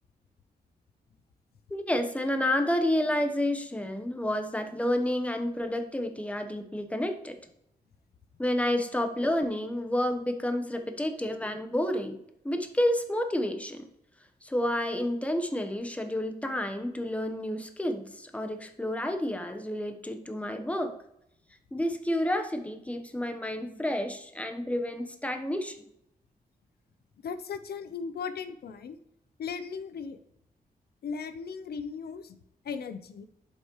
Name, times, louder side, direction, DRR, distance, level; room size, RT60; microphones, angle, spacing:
voice 1, 1.7-7.4 8.4-12.2 12.4-13.9 14.4-20.9 21.7-25.7, left 1 dB, 10° left, 6 dB, 1.0 m, -30 dB
voice 2, 27.2-29.0 29.4-30.2 31.0-32.4 32.6-33.3, left 6 dB, 80° left, 10 dB, 0.6 m, -37 dB
8.2 x 5.4 x 3.1 m, 0.76 s
cardioid pair, 85°, 16 cm